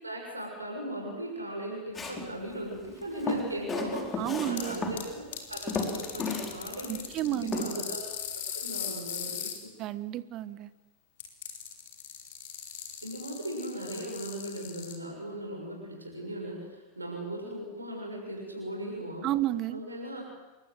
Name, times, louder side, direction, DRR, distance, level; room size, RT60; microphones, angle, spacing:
voice 1, 0.0-8.0 8.5-9.7 13.0-19.3 19.7-20.2, right 1 dB, 80° right, 0 dB, 6.6 m, -38 dB
Walk footsteps, 1.9-2.3 3.0-5.0 5.3-5.4 5.7-6.5 6.8-6.9 7.5-7.6, left 4 dB, 20° left, 4.9 m, -33 dB
voice 2, 4.2-4.8 6.9-7.8 9.8-10.7 19.2-19.8, right 14 dB, 35° right, 16 dB, 1.3 m, -31 dB
sound 1, 4.6-5.0 5.3-9.6 11.2-14.9, left 9 dB, 55° left, 4.6 m, -38 dB
28.5 x 23.0 x 8.1 m, 1.2 s
figure-of-eight pair, 90°, 0 cm